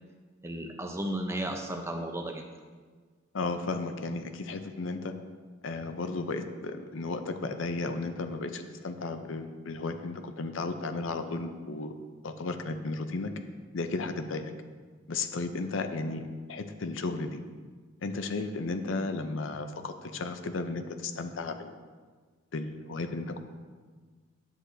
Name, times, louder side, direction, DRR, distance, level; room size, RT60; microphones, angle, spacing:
voice 1, 0.4-2.4, right 1 dB, 15° right, 3 dB, 0.6 m, -34 dB
voice 2, 3.3-5.1 5.6-11.9 12.2-13.3 13.7-14.5 15.1-17.4 18.0-21.7 22.5-23.4, left 3 dB, 65° left, 7 dB, 0.6 m, -34 dB
10.0 x 8.0 x 2.7 m, 1.5 s
head